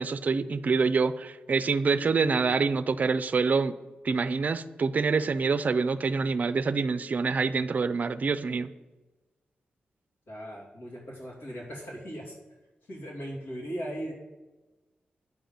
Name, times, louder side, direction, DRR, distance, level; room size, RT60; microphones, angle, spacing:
voice 1, 0.0-3.7 4.0-8.7, right 4 dB, 50° right, 13 dB, 0.4 m, -26 dB
voice 2, 10.3-12.4 12.9-14.1, equal, 90° left, -4 dB, 2.7 m, -38 dB
9.4 x 3.8 x 7.0 m, 1.1 s
cardioid pair, 80°, 3 cm